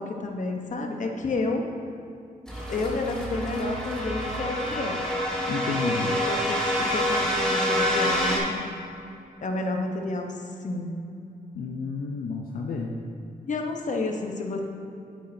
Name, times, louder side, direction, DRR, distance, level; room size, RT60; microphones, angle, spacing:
voice 1, 0.0-1.6 2.7-5.0 6.0-8.6 9.4-10.9 13.4-14.6, left 2 dB, 55° left, 3 dB, 1.0 m, -30 dB
sound 1, 2.5-8.4, equal, 5° left, 1.8 m, -27 dB
voice 2, 5.5-6.2 11.5-12.9, left 4 dB, 75° left, 0 dB, 0.6 m, -31 dB
9.2 x 8.6 x 2.7 m, 2.7 s
cardioid pair, 80°, 15 cm